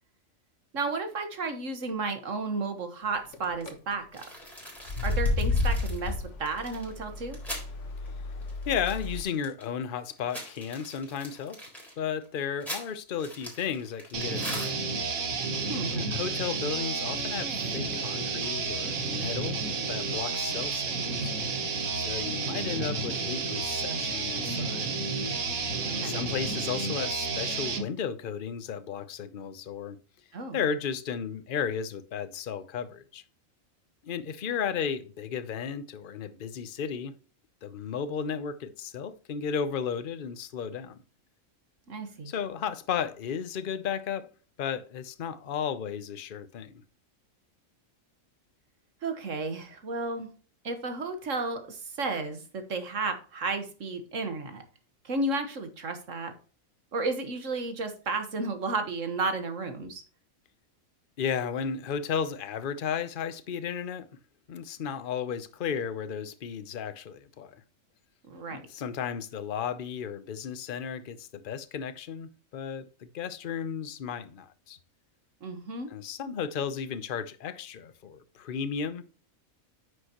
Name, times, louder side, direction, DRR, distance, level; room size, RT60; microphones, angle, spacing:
voice 1, 0.7-4.2 5.0-7.4 15.7-15.9 25.8-26.3 30.3-30.6 41.9-42.3 49.0-50.3 50.6-54.6 55.0-56.3 56.9-60.0 68.3-68.6 75.4-75.9, right 3 dB, 65° right, 1.8 m, -33 dB
sound 1, 3.3-3.7 4.8-9.2, left 3 dB, 60° left, 1.5 m, -31 dB
sound 2, 4.1-7.7 8.1-8.2 8.4-9.7 10.1-15.1, equal, ahead, 3.8 m, -42 dB
voice 2, 8.7-11.6 12.0-14.9 15.9-21.3 21.9-24.9 26.0-30.0 30.5-33.2 34.0-37.1 37.6-41.0 42.3-44.3 44.6-46.8 61.2-64.1 64.5-67.6 68.5-74.8 75.9-79.0, left 7 dB, 45° left, 0.8 m, -34 dB
sound 3, 14.1-27.8, right 4 dB, 85° right, 1.7 m, -31 dB
9.6 x 6.4 x 3.0 m
omnidirectional pair, 1.4 m